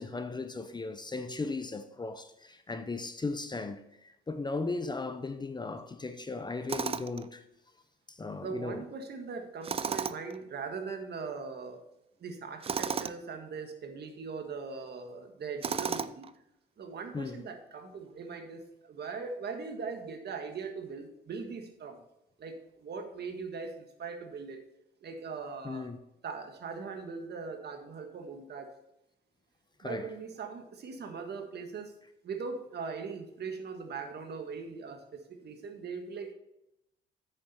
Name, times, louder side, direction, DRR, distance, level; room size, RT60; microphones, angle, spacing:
voice 1, 0.0-7.4 8.1-8.9 17.1-17.4 25.6-26.0 29.8-30.1, left 3 dB, 20° left, 0.7 m, -37 dB
Tools, 6.7-7.3 9.6-10.4 12.6-13.2 15.6-16.3, right 6 dB, 30° right, 0.4 m, -33 dB
voice 2, 8.4-11.8 12.2-16.3 16.8-22.0 22.4-24.6 25.0-25.9 26.2-28.7 29.8-31.9 32.2-36.3, right 5 dB, 55° right, 1.6 m, -40 dB
8.8 x 6.9 x 4.3 m
cardioid pair, 90°, 20 cm